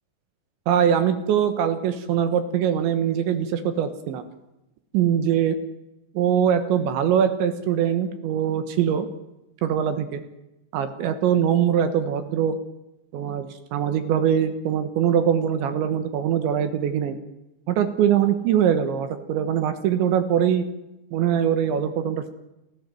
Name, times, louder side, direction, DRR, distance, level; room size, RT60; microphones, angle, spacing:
voice 1, 0.7-4.2 4.9-5.6 6.1-9.1 9.6-10.2 10.7-12.6 13.1-17.2 17.7-20.6 21.1-22.3, right 9 dB, 70° right, 10 dB, 3.3 m, -22 dB
27.5 x 15.5 x 7.7 m, 0.92 s
omnidirectional pair, 6.0 m